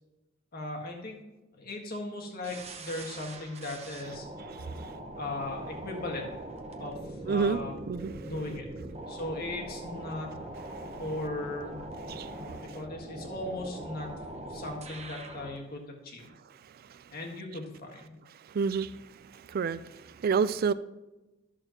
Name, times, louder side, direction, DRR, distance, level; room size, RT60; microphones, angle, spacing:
voice 1, 0.5-1.2 1.5-4.3 5.2-6.3 6.8-7.8 8.2-8.7 9.1-10.3 11.0-11.9 12.3-14.2 14.5-16.3 17.1-18.2, left 2 dB, 50° left, 1.6 m, -38 dB
sound 1, 2.4-15.6, right 1 dB, 35° right, 1.0 m, -42 dB
voice 2, 4.6-4.9 7.3-7.6 7.9-8.1 12.1-12.6 18.5-19.0 19.3-20.7, right 5 dB, 50° right, 0.3 m, -29 dB
12.5 x 6.6 x 3.0 m
head